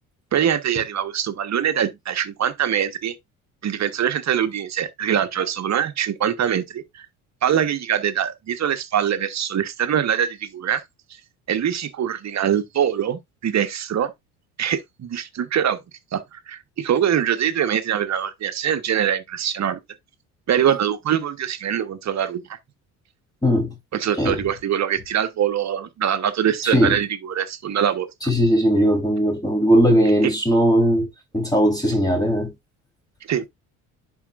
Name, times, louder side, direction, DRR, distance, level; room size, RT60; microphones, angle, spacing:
voice 1, 0.3-3.1 3.6-7.1 7.4-10.8 11.5-14.1 14.6-15.8 16.1-19.8 20.5-22.6 23.9-28.1 33.3-33.4, right 9 dB, 40° right, 1.2 m, -23 dB
voice 2, 23.4-23.7 24.2-24.4 26.6-27.0 28.2-31.1 31.3-32.5, equal, 10° left, 3.5 m, -18 dB
10.5 x 4.6 x 2.5 m
hypercardioid pair, 65°, 43 cm